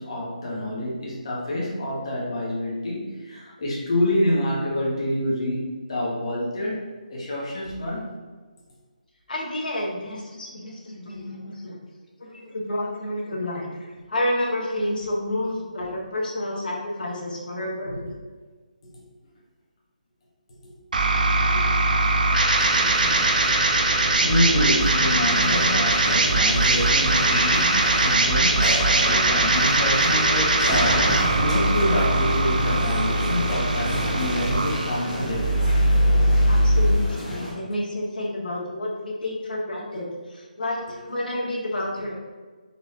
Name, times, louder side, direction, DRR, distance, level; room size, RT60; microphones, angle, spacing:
voice 1, 0.0-6.8 7.1-8.2 15.9-16.0 17.9-18.1 20.6-20.7 21.5-21.6 24.2-35.5, left 1 dB, 35° left, -5 dB, 1.0 m, -27 dB
voice 2, 9.3-11.8 12.3-13.7 14.1-17.9 36.5-42.2, left 1 dB, 85° left, -3 dB, 1.1 m, -29 dB
sound 1, 20.9-36.9, right 2 dB, 70° right, 0.5 m, -21 dB
sound 2, 22.6-37.5, equal, 5° right, 1.0 m, -30 dB
4.0 x 2.5 x 3.3 m, 1.4 s
hypercardioid pair, 170°, 5 cm